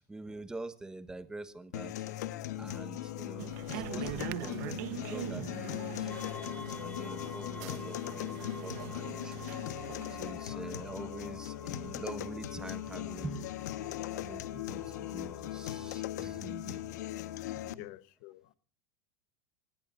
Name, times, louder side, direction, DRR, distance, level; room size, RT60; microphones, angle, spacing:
voice 1, 0.0-6.1 6.8-9.5 10.1-13.6 14.1-16.8 17.5-17.6, right 2 dB, 10° right, 1.3 m, -45 dB
sound 1, 1.7-17.7, left 13 dB, 85° left, 1.4 m, -39 dB
sound 2, 3.4-10.3, right 15 dB, 65° right, 1.1 m, -43 dB
sound 3, 6.1-15.9, left 6 dB, 15° left, 1.6 m, -49 dB
voice 2, 17.6-18.5, left 17 dB, 55° left, 1.1 m, -49 dB
26.0 x 20.0 x 2.6 m
supercardioid pair, 140°, 9 cm